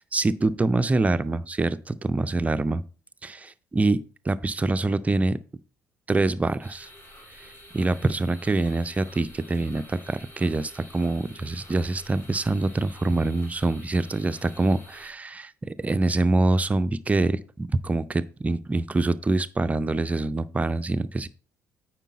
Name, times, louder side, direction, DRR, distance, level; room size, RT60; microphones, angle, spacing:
voice 1, 0.0-2.8 3.2-5.4 6.1-6.9 7.7-21.3, right 2 dB, 15° right, 0.5 m, -25 dB
sound 1, 6.6-15.1, equal, 30° left, 3.2 m, -49 dB
9.1 x 4.5 x 4.2 m
figure-of-eight pair, 50°, 8 cm